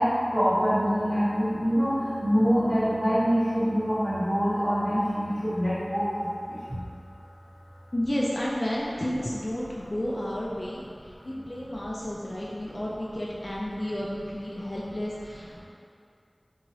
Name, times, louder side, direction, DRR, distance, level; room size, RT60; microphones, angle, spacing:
voice 1, 0.0-6.8, equal, 50° right, -14 dB, 1.5 m, -25 dB
voice 2, 7.9-15.6, left 1 dB, 45° left, -5 dB, 0.3 m, -32 dB
2.9 x 2.7 x 2.7 m, 2.4 s
wide cardioid pair, 50°, 0 cm